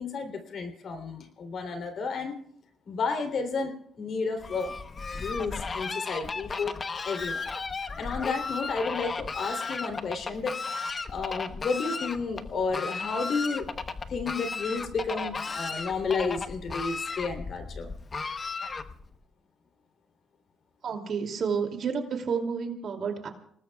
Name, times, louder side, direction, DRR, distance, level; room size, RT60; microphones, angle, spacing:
voice 1, 0.0-2.4 2.9-4.7 5.1-6.7 7.0-7.4 8.0-10.6 11.1-13.7 14.1-17.9, left 4 dB, 60° left, 6 dB, 3.1 m, -32 dB
Fowl, 4.4-19.2, left 4 dB, 35° left, 1.0 m, -35 dB
voice 2, 20.8-23.3, right 6 dB, 60° right, 3 dB, 2.7 m, -30 dB
29.5 x 19.0 x 2.4 m, 0.65 s
cardioid pair, 90°, 0 cm